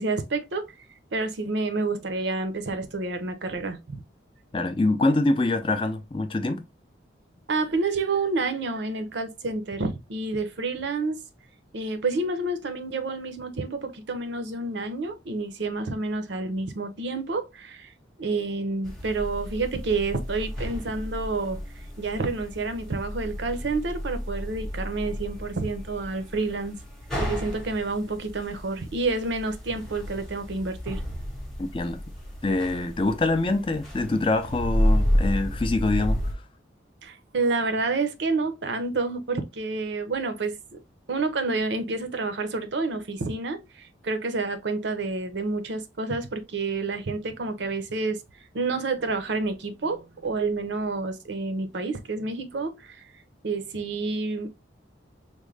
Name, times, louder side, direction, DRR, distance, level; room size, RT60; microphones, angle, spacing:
voice 1, 0.0-4.0 7.5-11.2 11.7-17.9 18.2-26.8 27.2-31.0 37.0-40.8 41.1-53.1 53.4-54.5, right 3 dB, 65° right, 0.6 m, -29 dB
voice 2, 4.5-6.6 31.6-32.0 32.4-36.2, left 2 dB, 25° left, 0.4 m, -25 dB
sound 1, 18.8-36.3, equal, ahead, 0.8 m, -31 dB
3.6 x 2.1 x 3.2 m
head